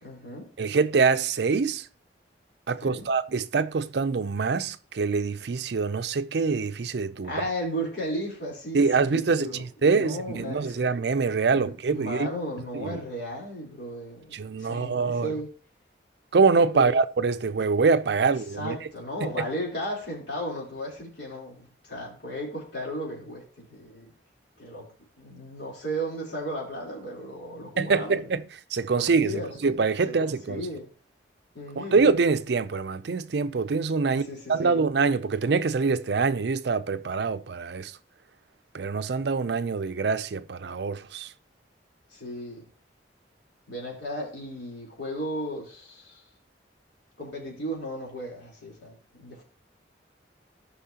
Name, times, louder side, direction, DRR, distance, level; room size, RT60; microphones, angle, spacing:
voice 1, 0.0-0.5 2.8-3.1 7.2-10.9 11.5-15.5 16.7-16.9 18.2-24.1 24.6-24.9 25.2-28.3 28.9-29.6 30.1-30.9 31.5-32.0 34.1-34.8 42.1-42.6 43.7-46.2 47.2-49.4, equal, 80° left, 3.6 m, -35 dB
voice 2, 0.6-1.8 2.7-7.3 8.7-12.3 12.7-13.0 14.3-15.3 16.3-18.8 19.4-19.5 27.8-28.4 28.7-30.6 31.8-34.2 34.5-37.9 38.7-41.3, right 4 dB, 65° right, 0.5 m, -25 dB
13.5 x 5.6 x 2.9 m
head